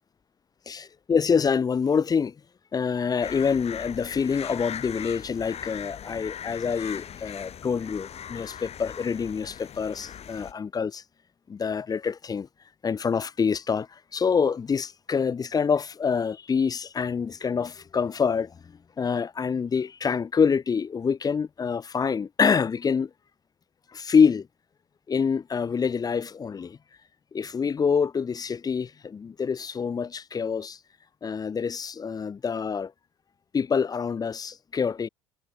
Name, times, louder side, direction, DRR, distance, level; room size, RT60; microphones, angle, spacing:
voice 1, 0.7-2.3 2.7-11.0 11.5-12.5 12.8-23.1 23.9-24.5 25.1-26.8 27.3-30.8 31.2-32.9 33.5-35.1, left 6 dB, 25° left, 0.4 m, -26 dB
sound 1, 3.2-10.5, left 9 dB, 40° left, 1.1 m, -40 dB
hypercardioid pair, 65°, 16 cm